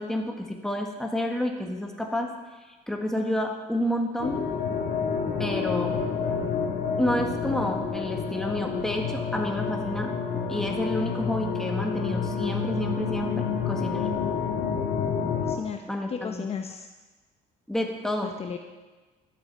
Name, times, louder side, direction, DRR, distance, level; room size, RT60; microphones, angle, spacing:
voice 1, 0.0-2.3 2.9-4.4 5.4-5.9 7.0-14.1 15.9-16.5 17.7-18.3, left 1 dB, 5° left, 2 dB, 1.7 m, -29 dB
sound 1, 4.2-15.6, left 6 dB, 80° left, 2.0 m, -29 dB
voice 2, 15.4-16.9 18.2-18.6, left 7 dB, 40° left, 5 dB, 0.9 m, -35 dB
12.0 x 7.9 x 6.9 m, 1.2 s
cardioid pair, 110°, 17 cm